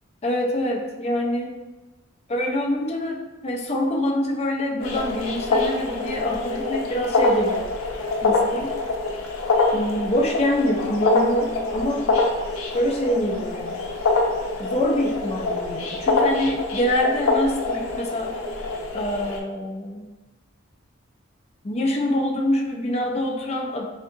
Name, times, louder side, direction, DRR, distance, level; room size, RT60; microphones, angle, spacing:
voice 1, 0.2-1.5 2.3-7.7 8.2-8.7 9.7-12.1 12.7-13.8 14.6-18.4 18.9-20.1 21.6-23.8, left 1 dB, 30° left, 0 dB, 0.4 m, -25 dB
sound 1, 4.8-19.4, left 3 dB, 90° left, 0.6 m, -25 dB
3.6 x 2.7 x 2.6 m, 1.2 s
head